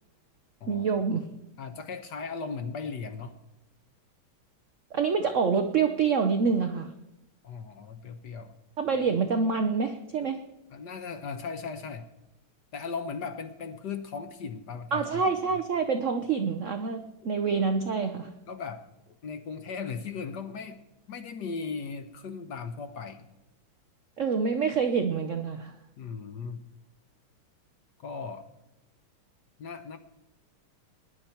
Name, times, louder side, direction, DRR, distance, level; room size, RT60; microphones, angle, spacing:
voice 1, 0.7-1.3 4.9-6.9 8.8-10.4 14.9-18.3 24.2-25.7, right 5 dB, 80° right, 7 dB, 0.6 m, -26 dB
voice 2, 1.6-3.4 7.4-8.5 10.7-12.1 12.7-15.2 18.5-20.8 21.1-23.3 26.0-26.6 28.0-28.5 29.6-30.0, left 5 dB, 60° left, 8 dB, 1.3 m, -37 dB
20.0 x 10.5 x 4.4 m, 0.93 s
omnidirectional pair, 2.3 m